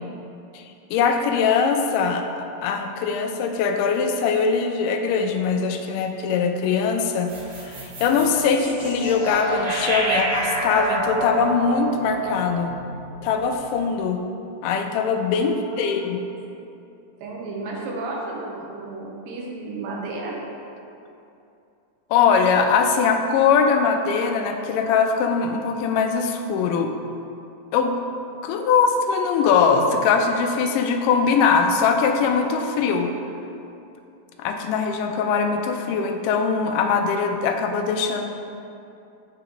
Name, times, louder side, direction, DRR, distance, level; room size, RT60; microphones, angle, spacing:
voice 1, 0.9-7.3 7.6-12.7 13.2-14.2 14.6-16.2 22.1-26.9 27.7-28.0 28.4-33.1 34.4-38.3, left 5 dB, 80° left, 4 dB, 2.0 m, -21 dB
sound 1, 7.3-13.6, right 1 dB, 70° right, 2.1 m, -28 dB
voice 2, 15.4-16.1 17.2-20.4, right 2 dB, 85° right, -2 dB, 2.5 m, -33 dB
8.0 x 5.0 x 2.9 m, 2.7 s
omnidirectional pair, 3.9 m